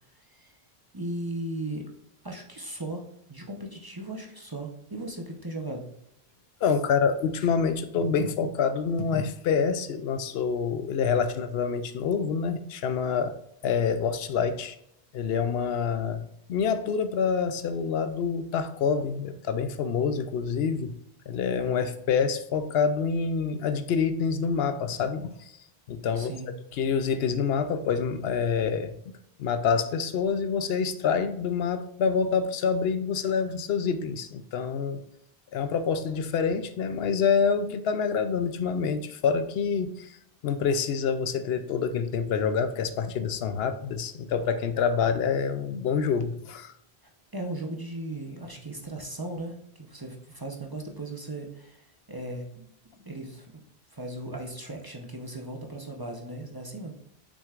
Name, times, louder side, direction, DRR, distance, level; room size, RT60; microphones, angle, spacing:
voice 1, 0.2-0.5 0.9-1.8 2.2-5.8 26.1-26.5 47.3-52.7 53.0-53.6 53.9-56.9, right 1 dB, 25° right, 1 dB, 0.8 m, -37 dB
voice 2, 6.6-13.4 13.6-14.8 15.1-16.2 16.5-20.9 21.3-25.5 25.9-26.3 26.8-28.9 29.4-35.0 35.5-40.2 40.4-46.7, left 6 dB, 80° left, 10 dB, 0.8 m, -27 dB
6.7 x 6.0 x 2.4 m, 0.76 s
omnidirectional pair, 1.0 m